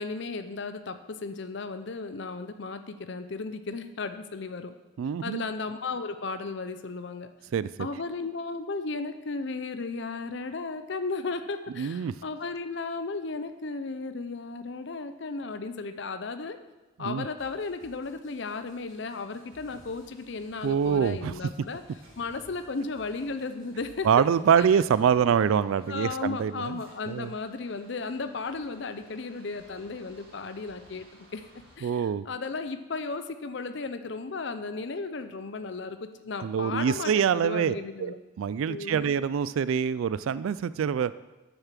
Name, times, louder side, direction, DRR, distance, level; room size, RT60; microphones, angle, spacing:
voice 1, 0.0-4.7 5.2-7.3 7.8-16.6 17.0-21.8 22.2-24.1 24.6-25.2 25.9-31.4 31.8-38.2 38.7-39.2, left 3 dB, 55° left, 9 dB, 0.6 m, -35 dB
voice 2, 5.0-5.4 7.5-7.7 11.8-12.1 17.1-17.3 20.6-21.3 24.0-26.8 27.1-27.3 31.8-32.2 36.4-37.7 38.0-41.1, right 7 dB, 75° right, 16 dB, 0.3 m, -25 dB
sound 1, 17.4-25.1, right 1 dB, 15° right, 4.1 m, -61 dB
sound 2, 18.8-31.8, equal, 45° right, 3.0 m, -57 dB
9.1 x 7.0 x 7.4 m, 1.1 s
head